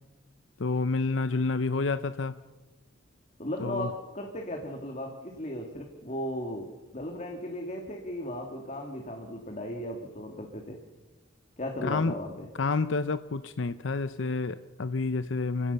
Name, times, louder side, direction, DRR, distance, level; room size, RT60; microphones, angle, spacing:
voice 1, 0.6-2.3 3.6-3.9 11.8-12.1 12.6-15.7, left 3 dB, 80° left, 12 dB, 0.7 m, -29 dB
voice 2, 3.4-6.7 6.9-10.8 11.6-12.5, left 1 dB, 35° left, 2 dB, 2.5 m, -36 dB
28.0 x 17.0 x 7.0 m, 1.2 s
head